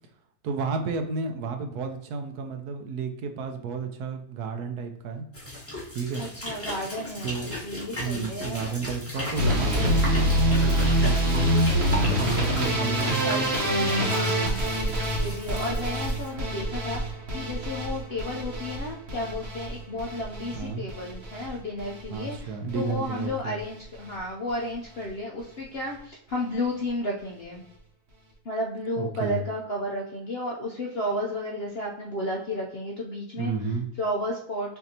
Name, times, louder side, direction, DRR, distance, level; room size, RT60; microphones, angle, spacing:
voice 1, 0.4-5.2 5.9-6.2 7.2-7.5 7.9-11.6 12.2-13.4 14.8-15.0 20.5-20.8 22.1-23.6 29.0-29.4 33.4-33.9, right 5 dB, 75° right, 6 dB, 1.1 m, -32 dB
sound 1, 5.3-16.3, left 1 dB, 10° left, 1.1 m, -36 dB
voice 2, 6.2-8.6 13.2-27.6 28.4-33.5 34.0-34.8, left 1 dB, 60° left, -2 dB, 0.6 m, -33 dB
sound 2, 9.3-21.5 21.8-22.4 22.7-23.3 23.6-23.8 24.1-24.2 24.5-24.6, equal, 45° right, 1.0 m, -26 dB
5.9 x 2.7 x 2.7 m, 0.72 s
omnidirectional pair, 1.7 m